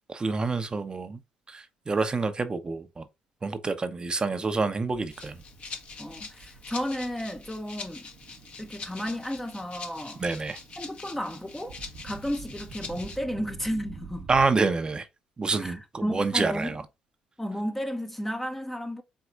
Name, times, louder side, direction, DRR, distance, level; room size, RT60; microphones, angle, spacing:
voice 1, 0.1-1.2 1.5-3.0 3.4-5.4 10.2-10.6 14.3-15.1 15.4-16.8, right 4 dB, 30° right, 0.7 m, -27 dB
sound 1, 4.7-14.5, right 5 dB, 70° right, 1.1 m, -48 dB
Rattle (instrument), 5.1-13.2, left 4 dB, 50° left, 1.3 m, -44 dB
voice 2, 6.0-8.1 8.6-10.2 10.8-14.3 15.6-16.8 17.4-19.0, equal, 10° left, 0.8 m, -33 dB
4.5 x 4.0 x 2.4 m
hypercardioid pair, 55°, 3 cm